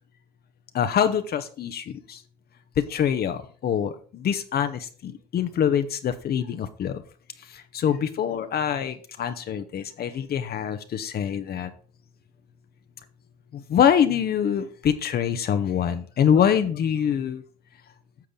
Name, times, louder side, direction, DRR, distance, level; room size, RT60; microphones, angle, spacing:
voice 1, 0.7-2.2 2.8-7.0 7.5-11.7 13.5-17.4, left 8 dB, 50° left, 9 dB, 1.0 m, -25 dB
10.5 x 6.7 x 3.9 m, 0.42 s
hypercardioid pair, 65°, 20 cm